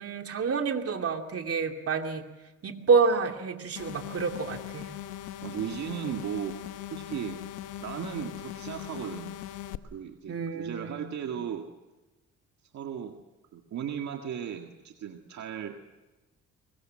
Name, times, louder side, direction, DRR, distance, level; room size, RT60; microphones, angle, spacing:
voice 1, 0.0-2.2 2.6-4.9 10.3-11.1, right 5 dB, 50° right, 4 dB, 2.7 m, -28 dB
sound 1, 3.8-9.8, left 12 dB, 85° left, 1.0 m, -40 dB
voice 2, 5.4-6.6 6.9-7.4 7.8-9.4 9.8-11.6 12.7-13.1 13.5-15.9, right 9 dB, 65° right, 3 dB, 1.8 m, -36 dB
23.5 x 21.5 x 7.7 m, 1.1 s
cardioid pair, 90°, 30 cm